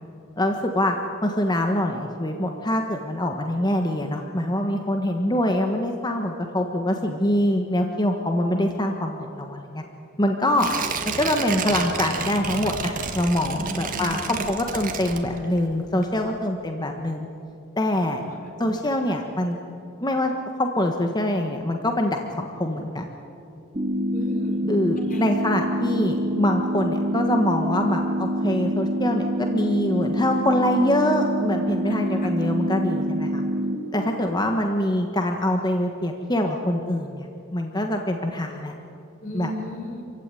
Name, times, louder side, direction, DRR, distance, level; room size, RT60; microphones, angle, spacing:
voice 1, 0.4-1.0 1.2-9.8 10.2-10.7 11.0-17.3 17.8-18.2 18.6-19.6 20.0-20.3 20.6-23.1 24.7-33.4 33.9-37.3 37.5-38.7 39.3-39.5, left 1 dB, 20° left, 3 dB, 1.4 m, -24 dB
Tearing, 10.5-15.7 16.0-16.1, right 5 dB, 45° right, 1.9 m, -30 dB
voice 2, 13.5-14.6 18.1-18.5 24.1-24.6 25.0-25.3 31.9-32.3 39.2-40.0, equal, 40° left, 1 dB, 4.6 m, -35 dB
sound 1, 23.7-33.8, equal, 25° right, 3.2 m, -26 dB
26.5 x 16.0 x 9.9 m, 2.7 s
head